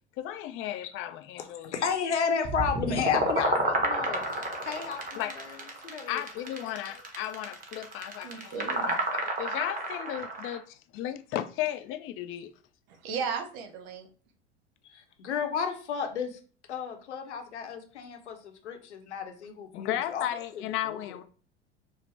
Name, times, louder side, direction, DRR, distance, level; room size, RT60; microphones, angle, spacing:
voice 1, 0.2-1.7 5.2-5.3 6.1-12.5 19.7-21.2, left 12 dB, 40° left, 0.4 m, -35 dB
voice 2, 1.4-5.6 5.8-6.2 6.6-7.0 14.8-16.4 16.7-21.2, left 6 dB, 80° left, 0.8 m, -33 dB
sound 1, 2.4-10.6, right 2 dB, 25° right, 1.0 m, -31 dB
voice 3, 8.2-9.0 13.0-14.1, right 6 dB, 60° right, 0.9 m, -35 dB
4.9 x 2.0 x 3.1 m
hypercardioid pair, 80°, 34 cm